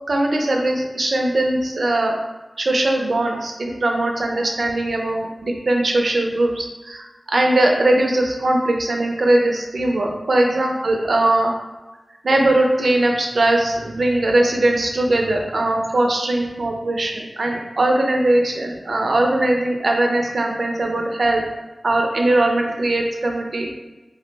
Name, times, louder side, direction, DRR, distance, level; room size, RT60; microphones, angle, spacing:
voice 1, 0.1-2.1 2.6-11.5 12.2-21.4 21.8-23.7, right 1 dB, 75° right, 1 dB, 0.4 m, -20 dB
2.3 x 2.0 x 3.2 m, 1.1 s
cardioid pair, 45°, 0 cm